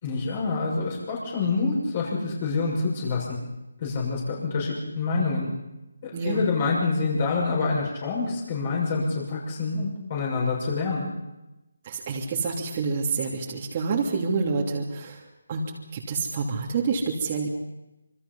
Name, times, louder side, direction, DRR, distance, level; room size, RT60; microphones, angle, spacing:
voice 1, 0.0-3.4 3.8-5.5 6.0-11.1, left 4 dB, 35° left, -3 dB, 6.6 m, -27 dB
voice 2, 6.1-6.4 11.8-15.2 15.5-15.6 15.9-17.5, right 4 dB, 30° right, -2 dB, 2.9 m, -27 dB
26.5 x 25.5 x 5.6 m, 0.96 s
figure-of-eight pair, 160°, 0 cm